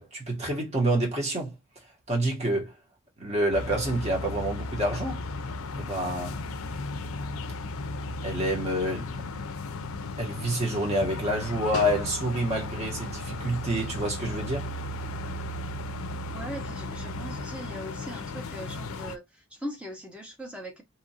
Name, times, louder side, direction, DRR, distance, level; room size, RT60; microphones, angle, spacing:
voice 1, 0.0-1.6 2.1-2.7 3.2-5.2 5.7-6.4 8.2-9.1 10.2-14.7, right 1 dB, 30° right, 1.1 m, -28 dB
sound 1, 3.5-19.2, left 2 dB, 80° left, 0.4 m, -35 dB
voice 2, 16.3-20.8, equal, 5° right, 0.7 m, -40 dB
2.9 x 2.4 x 2.7 m
head